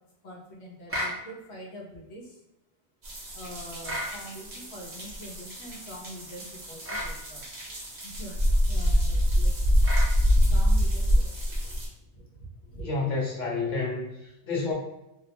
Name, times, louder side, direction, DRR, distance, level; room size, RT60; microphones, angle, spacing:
voice 1, 0.2-2.4 3.3-7.4 8.0-9.6 10.5-11.7 12.0-12.9, equal, 85° left, -2 dB, 0.9 m, -44 dB
sound 1, 0.9-1.2 3.8-4.1 6.8-7.1 9.8-10.1, equal, 15° right, 0.5 m, -32 dB
sound 2, 3.0-11.9, equal, 45° right, 0.8 m, -26 dB
voice 2, 12.8-14.7, left 3 dB, 45° left, -4 dB, 0.9 m, -30 dB
2.5 x 2.0 x 2.8 m, 0.90 s
omnidirectional pair, 1.1 m